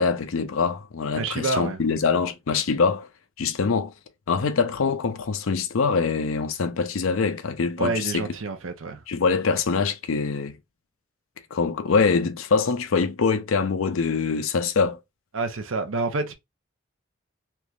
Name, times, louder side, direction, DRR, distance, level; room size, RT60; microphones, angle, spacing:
voice 1, 0.0-3.1 3.4-3.9 4.3-8.3 9.1-10.6 11.5-15.0, left 5 dB, 85° left, 0.5 m, -24 dB
voice 2, 1.1-1.8 7.8-9.0 15.3-16.3, right 3 dB, 80° right, 0.7 m, -28 dB
3.4 x 3.0 x 2.4 m
head